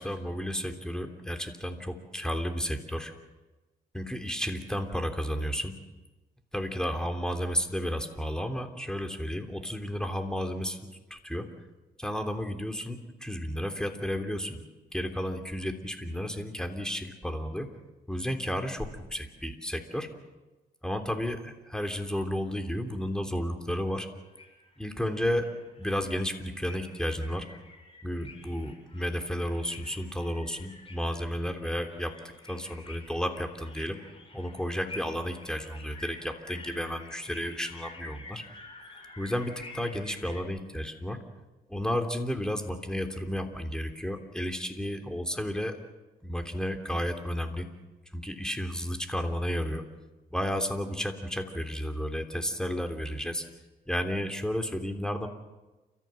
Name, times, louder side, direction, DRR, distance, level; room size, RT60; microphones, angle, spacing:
voice 1, 0.0-3.1 3.9-5.7 6.5-10.8 11.1-11.5 12.0-14.6 14.9-17.7 18.1-20.1 20.8-24.1 24.8-25.5 25.8-27.5 28.0-32.1 32.5-34.0 34.3-38.4 39.2-41.2 41.7-45.8 46.2-47.7 48.1-49.8 50.3-53.4 53.9-55.3, equal, 5° left, 5 dB, 3.2 m, -32 dB
sound 1, 24.3-40.4, left 3 dB, 35° left, 5.9 m, -50 dB
30.0 x 14.5 x 7.7 m, 1.2 s
cardioid pair, 75°, 16 cm